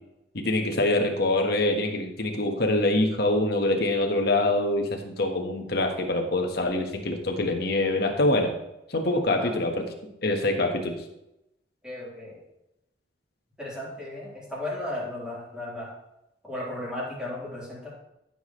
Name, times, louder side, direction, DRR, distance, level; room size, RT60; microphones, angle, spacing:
voice 1, 0.3-8.5 8.9-9.9 10.2-10.9, left 2 dB, 55° left, 3 dB, 1.4 m, -25 dB
voice 2, 11.8-12.4 13.6-15.9 16.4-17.9, left 1 dB, 5° right, -7 dB, 3.9 m, -35 dB
14.0 x 7.3 x 3.2 m, 0.87 s
head